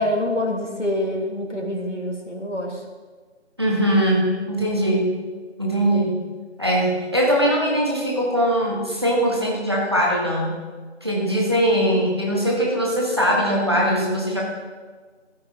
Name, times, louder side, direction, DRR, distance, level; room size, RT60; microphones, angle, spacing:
voice 1, 0.0-2.8, left 1 dB, 90° left, 1 dB, 2.3 m, -26 dB
voice 2, 3.6-5.1 5.6-6.2 6.6-10.6 11.0-14.4, equal, 20° right, -3 dB, 1.4 m, -21 dB
13.5 x 9.2 x 3.8 m, 1.4 s
figure-of-eight pair, 170°, 35 cm